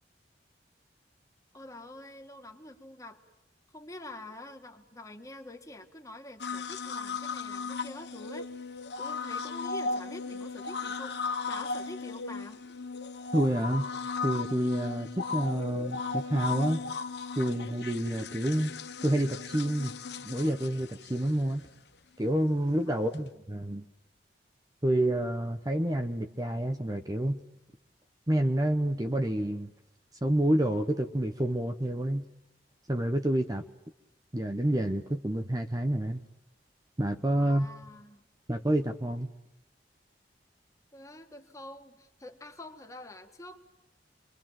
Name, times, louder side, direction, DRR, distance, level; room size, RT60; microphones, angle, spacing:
voice 1, 1.5-3.2 3.7-8.5 9.0-12.6 22.9-23.4 37.4-38.2 40.9-43.6, left 2 dB, 20° left, 4 dB, 2.0 m, -46 dB
sound 1, 6.4-21.7 23.1-23.2, left 4 dB, 70° left, 1.1 m, -36 dB
voice 2, 13.3-13.9 14.2-16.8 17.4-18.7 19.0-19.9 20.2-21.7 22.2-23.8 24.8-27.4 28.3-29.7 30.2-32.2 32.9-33.6 34.3-36.2 37.0-37.7 38.5-39.3, right 1 dB, 20° right, 6 dB, 0.9 m, -28 dB
28.5 x 23.5 x 7.6 m, 0.88 s
head